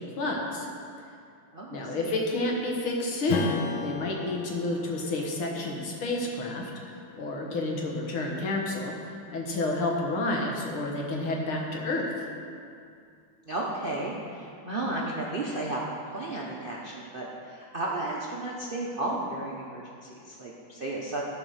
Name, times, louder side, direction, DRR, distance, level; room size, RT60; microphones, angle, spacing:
voice 1, 0.2-0.7 1.7-3.6 3.8-12.3, left 2 dB, 90° left, -1 dB, 2.3 m, -30 dB
voice 2, 1.5-2.1 13.5-21.2, right 2 dB, 55° right, -4 dB, 0.6 m, -33 dB
Strum, 3.3-8.2, left 4 dB, 70° left, 1.4 m, -36 dB
13.5 x 5.0 x 6.3 m, 2.4 s
omnidirectional pair, 2.3 m